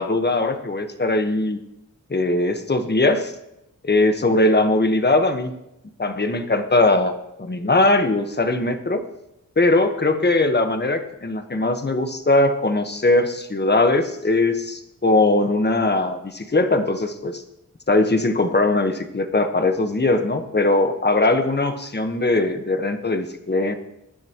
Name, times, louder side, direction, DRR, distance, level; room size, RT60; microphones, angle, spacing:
voice 1, 0.0-1.6 2.1-3.3 3.8-5.5 6.0-7.1 7.4-9.0 9.6-17.4 17.9-23.8, left 2 dB, 30° left, 7 dB, 1.3 m, -20 dB
21.0 x 10.5 x 3.1 m, 0.86 s
wide cardioid pair, 70°, 33 cm